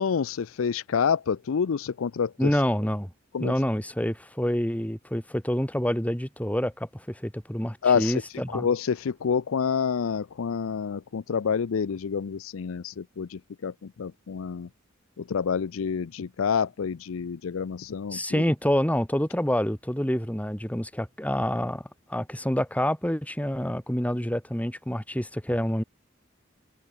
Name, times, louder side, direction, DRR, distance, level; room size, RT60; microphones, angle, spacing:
voice 1, 0.0-2.5 3.3-3.5 7.8-8.2 8.5-14.7 15.2-18.4, left 6 dB, 75° left, 0.5 m, -28 dB
voice 2, 2.4-3.1 3.4-8.7 18.1-25.8, equal, 5° left, 2.7 m, -27 dB
head